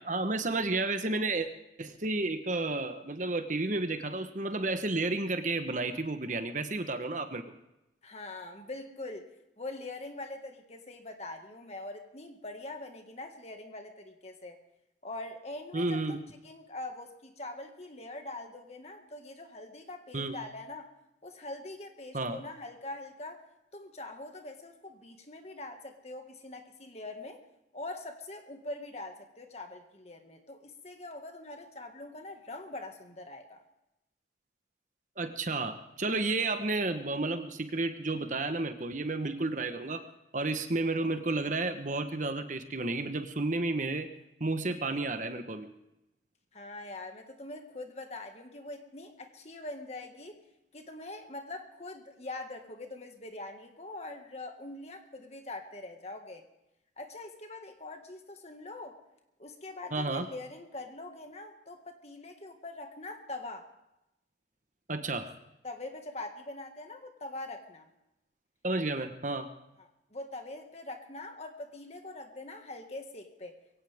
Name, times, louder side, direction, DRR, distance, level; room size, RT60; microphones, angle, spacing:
voice 1, 0.0-1.5 1.8-7.4 15.7-16.2 20.1-20.4 22.1-22.4 35.2-40.0 40.3-44.1 44.4-45.7 59.9-60.3 64.9-65.3 68.6-69.5, right 2 dB, 40° right, 8 dB, 1.2 m, -31 dB
voice 2, 8.0-9.3 9.6-14.6 15.0-16.0 16.4-20.9 21.2-23.5 23.7-27.4 27.7-33.6 46.5-50.3 50.7-56.4 57.0-59.0 59.4-63.7 65.6-67.9 69.8-73.6, left 2 dB, 35° left, 5 dB, 1.9 m, -43 dB
22.5 x 17.5 x 3.6 m, 0.90 s
head